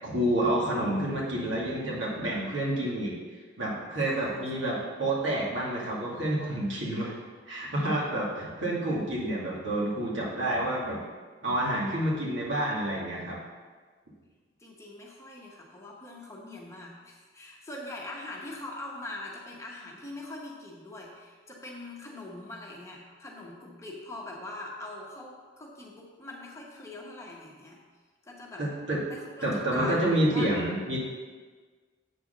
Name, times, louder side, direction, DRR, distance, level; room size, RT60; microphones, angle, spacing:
voice 1, 0.0-3.1 3.6-7.1 7.5-11.0 11.4-13.4 28.6-29.0 29.4-31.0, right 1 dB, 85° right, -5 dB, 2.4 m, -29 dB
voice 2, 4.0-4.4 9.1-9.2 14.6-27.8 28.2-28.7 29.1-30.5, left 2 dB, 15° left, -2 dB, 1.1 m, -42 dB
8.1 x 4.5 x 6.5 m, 1.5 s
head